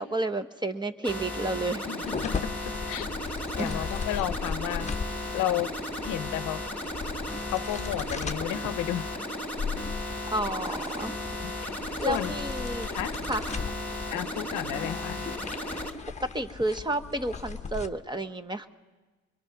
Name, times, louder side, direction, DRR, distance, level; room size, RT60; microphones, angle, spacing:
voice 1, 0.0-1.8 3.6-3.9 10.3-11.1 12.0-12.9 13.3-13.5 16.3-18.7, right 2 dB, 15° right, 7 dB, 1.0 m, -31 dB
sound 1, 1.0-15.9, left 1 dB, 5° left, 2.6 m, -35 dB
voice 2, 1.9-2.5 2.9-3.1 3.6-4.9 5.3-6.6 7.5-9.1 11.4-12.4 12.9-13.2 14.1-15.2, left 13 dB, 90° left, 13 dB, 0.8 m, -32 dB
sound 2, 2.0-17.9, left 5 dB, 25° left, 1.0 m, -38 dB
23.0 x 22.0 x 6.0 m, 1.3 s
cardioid pair, 90°, 30 cm